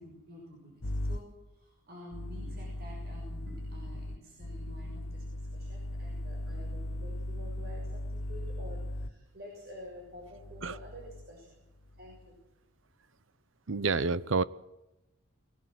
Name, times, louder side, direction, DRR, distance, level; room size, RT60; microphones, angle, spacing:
voice 1, 0.0-11.6 12.0-12.3, left 1 dB, 50° right, -2 dB, 6.6 m, -49 dB
sound 1, 0.8-1.2 2.1-9.1 10.1-11.3 11.8-12.2, left 1 dB, 90° left, 1.2 m, -38 dB
voice 2, 13.7-14.4, right 4 dB, 65° right, 18 dB, 0.8 m, -28 dB
22.5 x 18.0 x 7.7 m, 0.97 s
head